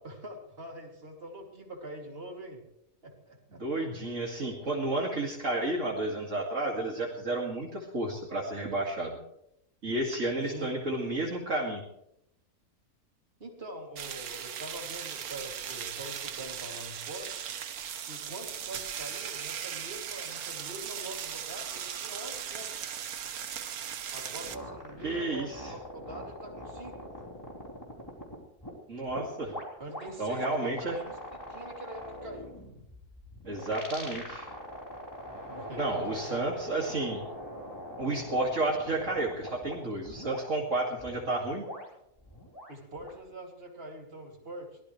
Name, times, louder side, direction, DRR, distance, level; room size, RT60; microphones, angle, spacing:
voice 1, 0.0-2.6 3.0-3.6 10.5-10.7 13.4-17.4 18.0-22.9 24.1-27.1 29.8-31.2 31.5-32.6 35.5-36.4 42.7-44.8, right 1 dB, 40° right, 1 dB, 3.2 m, -44 dB
voice 2, 3.6-9.2 9.8-11.8 25.0-25.7 28.9-29.5 30.2-31.0 33.5-34.5 35.8-37.2 38.0-41.6, right 2 dB, 55° right, -2 dB, 2.7 m, -31 dB
sound 1, 14.0-24.6, right 9 dB, 85° right, 1.4 m, -38 dB
sound 2, 24.4-28.7 29.1-39.8 40.1-40.4 41.0-43.2, equal, 15° left, 4.3 m, -42 dB
23.0 x 18.0 x 3.3 m, 0.77 s
omnidirectional pair, 1.5 m